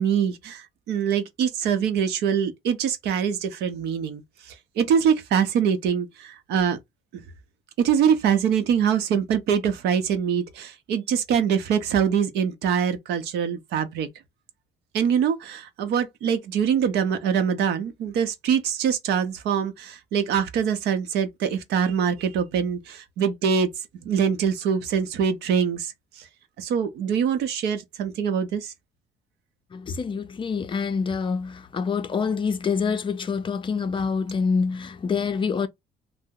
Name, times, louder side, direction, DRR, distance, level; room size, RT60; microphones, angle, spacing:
voice 1, 0.0-6.8 7.1-7.2 7.8-14.1 14.9-23.7 24.0-26.3 26.6-28.7, right 7 dB, 75° right, 0.7 m, -24 dB
voice 2, 29.7-35.7, left 5 dB, 30° left, 0.4 m, -26 dB
2.7 x 2.0 x 3.6 m
cardioid pair, 110°, 17 cm